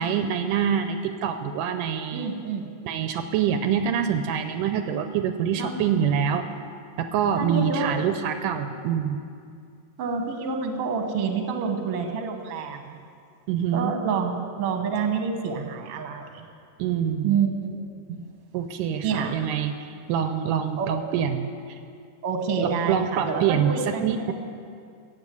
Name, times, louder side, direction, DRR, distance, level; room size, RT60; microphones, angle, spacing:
voice 1, 0.0-2.3 2.9-6.5 7.0-9.2 13.5-14.0 16.8-17.3 18.5-21.5 22.6-24.3, right 8 dB, 80° right, 8 dB, 2.2 m, -25 dB
voice 2, 2.1-2.7 5.6-5.7 7.4-8.0 10.0-13.0 13.7-16.4 17.2-17.7 18.1-18.2 19.0-19.3 20.8-20.9 22.2-24.3, right 5 dB, 55° right, 4 dB, 1.9 m, -28 dB
15.5 x 8.2 x 8.2 m, 2.3 s
omnidirectional pair, 3.8 m